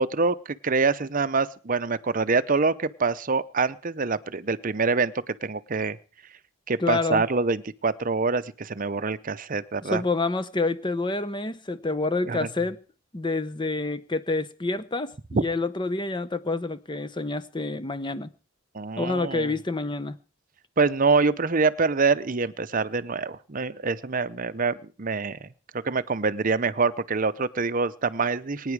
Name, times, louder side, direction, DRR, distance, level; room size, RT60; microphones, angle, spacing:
voice 1, 0.0-6.0 6.7-10.0 12.3-12.5 18.7-19.5 20.8-25.5 25.8-28.7, right 4 dB, 40° right, 0.7 m, -25 dB
voice 2, 6.8-7.2 9.8-12.8 13.1-18.3 19.0-20.2, left 3 dB, 25° left, 0.9 m, -28 dB
23.5 x 9.8 x 4.8 m
head